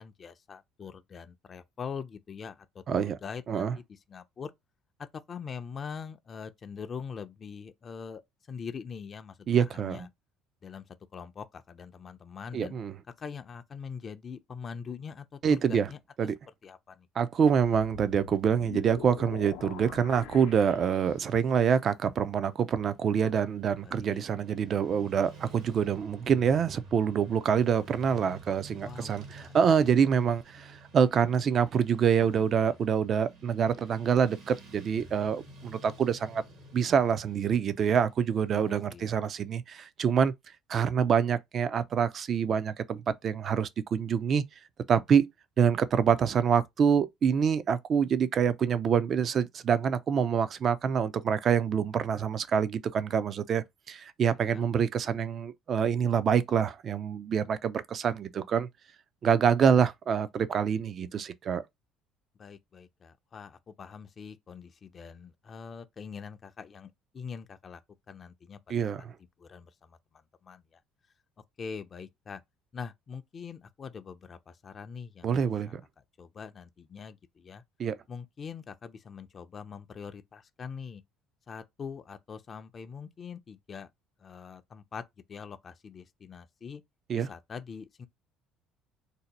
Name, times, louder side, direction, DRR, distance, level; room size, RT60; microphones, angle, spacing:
voice 1, 0.0-4.5 5.0-8.2 8.5-10.1 10.6-12.7 13.2-16.0 16.6-17.1 23.8-24.2 28.8-29.1 29.4-29.9 32.2-32.8 38.5-39.1 54.4-54.7 62.4-67.8 68.1-68.8 69.4-70.0 70.4-70.8 71.6-72.4 72.7-75.4 76.2-77.6 78.1-81.0 81.5-83.9 84.2-85.0 85.3-86.8 87.1-88.1, left 6 dB, 40° left, 0.4 m, -43 dB
voice 2, 9.5-10.1 12.5-12.9 15.4-15.9 16.2-16.4 17.2-36.4 36.7-40.3 40.7-44.4 44.9-45.3 45.6-58.7 59.2-61.6 68.7-69.1 75.2-75.8 77.8-78.0 87.1-87.3, right 7 dB, 45° right, 0.4 m, -26 dB
sound 1, 17.5-21.5, left 9 dB, 85° left, 0.6 m, -44 dB
Motorcycle / Traffic noise roadway noise, 22.4-39.1, right 2 dB, 70° right, 1.2 m, -51 dB
2.7 x 2.1 x 4.0 m
supercardioid pair, 85°, 0 cm